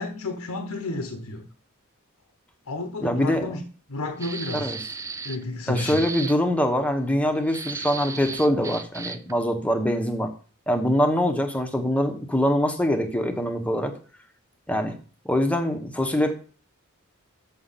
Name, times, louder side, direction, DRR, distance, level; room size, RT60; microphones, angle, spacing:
voice 1, 0.0-1.5 2.7-3.6 3.9-4.7 5.2-6.0, left 2 dB, 80° left, 1.1 m, -31 dB
voice 2, 3.0-3.6 4.6-4.8 5.7-10.3 10.7-13.9 14.7-14.9 15.2-16.3, equal, 5° left, 1.1 m, -24 dB
sound 1, 4.2-5.4 5.7-6.4 7.5-9.3, right 4 dB, 15° right, 0.3 m, -35 dB
6.7 x 6.3 x 5.7 m
head